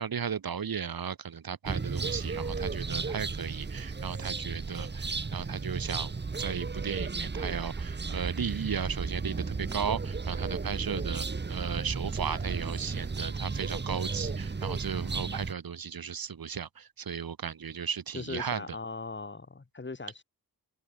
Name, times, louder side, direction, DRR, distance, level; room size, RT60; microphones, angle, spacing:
voice 1, 0.0-18.6, right 7 dB, 70° right, 2.6 m, -35 dB
sound 1, 1.6-15.5, right 4 dB, 30° right, 1.5 m, -34 dB
voice 2, 18.1-20.2, left 3 dB, 30° left, 5.5 m, -39 dB
wide cardioid pair, 175°, 37 cm